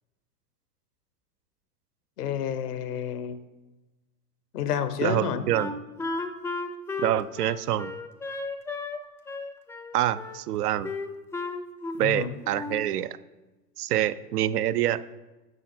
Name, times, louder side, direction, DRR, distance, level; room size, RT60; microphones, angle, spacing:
voice 1, 2.2-3.4 4.5-5.4 12.0-12.3, left 8 dB, 85° left, 11 dB, 1.0 m, -29 dB
voice 2, 5.0-5.7 7.0-7.9 9.9-10.9 12.0-13.2 13.8-15.0, right 12 dB, 85° right, 15 dB, 0.6 m, -26 dB
Wind instrument woodwind instrument, 5.5-9.0 9.3-10.4 10.8-12.1 12.4-12.9, left 3 dB, 5° left, 0.4 m, -34 dB
10.5 x 6.2 x 4.3 m, 1.1 s
hypercardioid pair, 115°, 45 cm